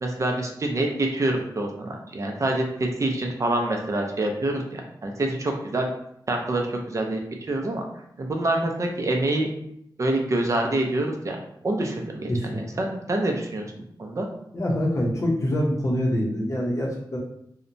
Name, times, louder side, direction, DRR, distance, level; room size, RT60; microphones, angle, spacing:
voice 1, 0.0-5.9 6.3-7.8 8.2-9.5 10.0-11.4 11.6-14.3, right 2 dB, 40° right, 2 dB, 0.4 m, -26 dB
voice 2, 12.3-12.6 14.5-17.2, equal, 40° left, -2 dB, 0.6 m, -25 dB
2.7 x 2.1 x 2.5 m, 0.73 s
wide cardioid pair, 130°, 8 cm